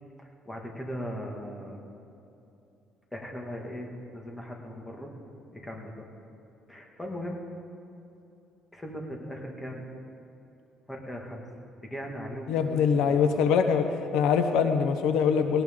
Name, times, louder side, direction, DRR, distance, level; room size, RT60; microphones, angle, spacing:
voice 1, 0.2-1.8 3.1-5.1 5.5-6.1 6.7-7.4 8.7-9.8 10.9-11.4 11.8-13.2, equal, 10° left, 0 dB, 2.0 m, -38 dB
voice 2, 12.5-15.6, left 6 dB, 90° left, 7 dB, 0.9 m, -23 dB
19.0 x 18.0 x 3.8 m, 2.8 s
cardioid pair, 130°, 0 cm